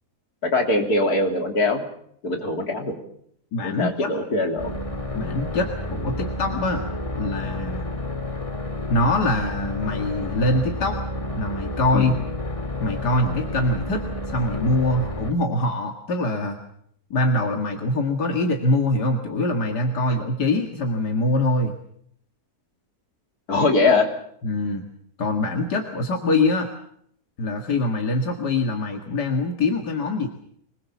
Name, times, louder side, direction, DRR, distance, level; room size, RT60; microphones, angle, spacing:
voice 1, 0.4-1.9 2.2-3.0 3.6-4.8 11.9-12.1 23.5-24.0, left 2 dB, 70° left, 3 dB, 3.6 m, -22 dB
voice 2, 3.5-4.1 5.1-6.8 7.2-7.9 8.9-11.0 11.4-12.2 12.8-16.6 17.1-21.7 24.4-24.9 25.2-26.7 27.4-30.3, left 2 dB, 90° left, 3 dB, 2.5 m, -23 dB
sound 1, 4.6-15.3, left 1 dB, 20° left, 1.9 m, -30 dB
25.0 x 21.0 x 7.2 m, 0.68 s
omnidirectional pair, 1.7 m